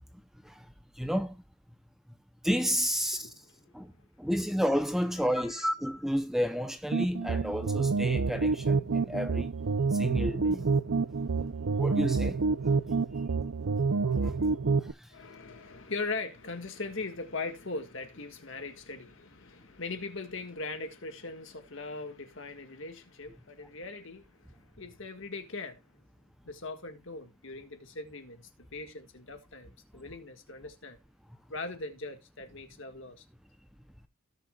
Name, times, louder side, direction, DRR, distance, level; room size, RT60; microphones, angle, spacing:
voice 1, 1.0-1.4 2.4-3.3 3.7-3.9 4.2-9.5 9.9-10.7 11.8-12.4 14.1-14.4 14.8-15.1, equal, ahead, 0.6 m, -31 dB
voice 2, 3.1-4.0 5.3-5.7 15.1-25.9 26.5-31.0 31.5-33.3, left 3 dB, 55° left, 1.8 m, -40 dB
sound 1, 6.9-14.9, right 4 dB, 70° right, 0.6 m, -28 dB
18.0 x 6.5 x 2.4 m
head